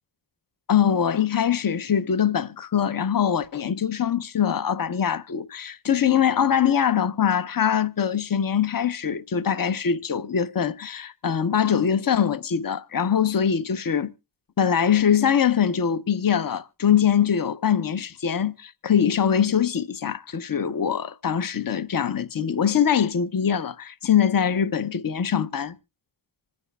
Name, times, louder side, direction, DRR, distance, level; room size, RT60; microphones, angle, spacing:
voice 1, 0.7-14.1 14.6-25.8, left 8 dB, 45° left, 0.7 m, -23 dB
25.5 x 9.7 x 2.2 m
wide cardioid pair, 55°, 48 cm